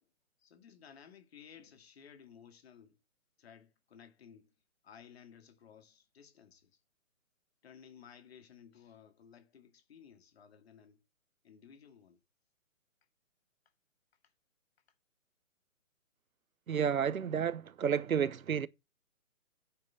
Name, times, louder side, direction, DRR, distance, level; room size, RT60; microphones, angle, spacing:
voice 1, 0.4-3.0 3.4-4.5 4.8-6.7 7.6-11.0 11.4-12.2, left 7 dB, 50° left, 2.4 m, -57 dB
voice 2, 16.7-18.7, right 7 dB, 80° right, 1.1 m, -31 dB
9.4 x 5.4 x 7.1 m
hypercardioid pair, 160°, 41 cm